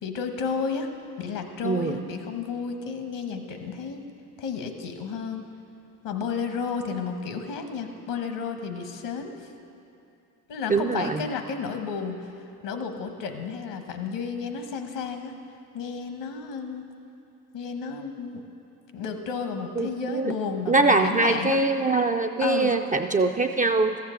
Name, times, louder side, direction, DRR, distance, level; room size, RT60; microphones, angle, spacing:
voice 1, 0.0-0.9 1.2-4.0 4.4-5.4 6.0-9.5 10.5-12.3 12.6-15.3 15.7-16.8 17.5-18.4 18.9-21.6 22.4-22.7, left 5 dB, 65° left, 6 dB, 1.2 m, -32 dB
voice 2, 1.6-2.0 10.7-11.3 19.8-20.3 20.7-24.0, right 3 dB, 20° right, 5 dB, 0.3 m, -23 dB
14.5 x 7.3 x 3.8 m, 2.7 s
hypercardioid pair, 55°, 46 cm